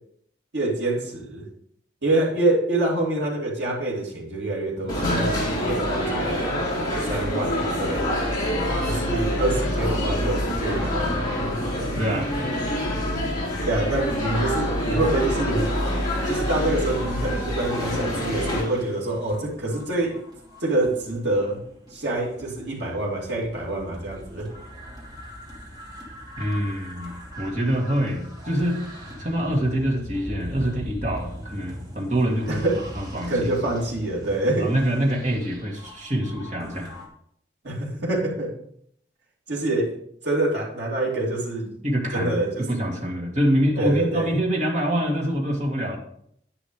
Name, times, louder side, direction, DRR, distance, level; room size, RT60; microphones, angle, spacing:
voice 1, 0.5-1.5 2.0-6.4 7.0-8.1 8.8-11.4 13.6-15.7 16.3-20.2 20.6-21.6 21.9-24.5 32.5-32.8 33.3-34.7 37.6-38.5 39.5-39.9 40.2-41.7 42.1-42.7 43.8-44.3, right 2 dB, 70° right, -3 dB, 3.0 m, -26 dB
sound 1, 4.9-18.6, equal, 25° left, 3.4 m, -26 dB
voice 2, 11.9-12.3 26.4-28.8 29.2-33.5 34.5-36.9 41.8-46.0, equal, 40° right, -1 dB, 2.3 m, -25 dB
sound 2, 17.6-37.1, equal, 20° right, 1.9 m, -41 dB
10.5 x 10.0 x 3.2 m, 0.68 s
head